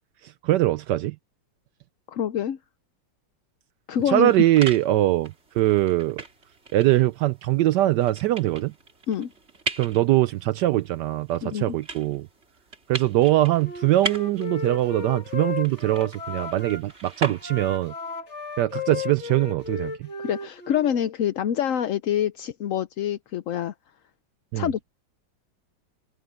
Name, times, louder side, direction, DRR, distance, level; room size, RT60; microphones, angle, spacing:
voice 1, 0.2-1.1 4.1-6.2 6.7-8.7 9.8-12.3 12.9-17.9 18.6-20.1 24.5-24.7, right 15 dB, 75° right, 1.1 m, -22 dB
voice 2, 2.1-2.6 3.9-4.3 9.1-9.3 11.4-11.8 20.2-23.7 24.6-24.8, left 9 dB, 60° left, 0.9 m, -26 dB
sound 1, 4.0-17.9, right 3 dB, 35° right, 2.7 m, -39 dB
Wind instrument woodwind instrument, 13.5-16.8 17.4-20.9, left 5 dB, 40° left, 2.0 m, -35 dB
open air
omnidirectional pair, 2.0 m